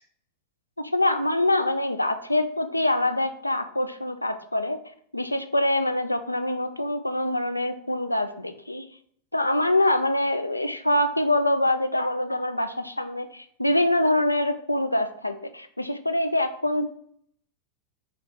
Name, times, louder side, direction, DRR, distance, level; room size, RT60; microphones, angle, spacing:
voice 1, 0.8-4.8 5.1-8.9 9.3-16.9, left 1 dB, 85° left, 9 dB, 0.3 m, -25 dB
3.8 x 3.2 x 3.2 m, 0.64 s
figure-of-eight pair, 90°, 0 cm